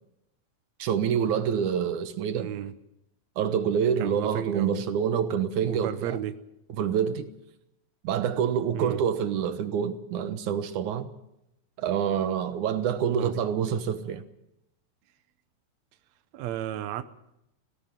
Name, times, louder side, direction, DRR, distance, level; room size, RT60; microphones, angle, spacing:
voice 1, 0.8-2.5 3.4-6.2 6.7-7.3 8.0-11.1 11.8-14.2, right 8 dB, 65° right, 2.3 m, -27 dB
voice 2, 2.3-2.7 4.0-4.8 5.6-6.4 8.7-9.0 13.2-13.3 16.3-17.0, right 11 dB, 80° right, 1.6 m, -33 dB
17.5 x 17.5 x 9.0 m
omnidirectional pair, 4.4 m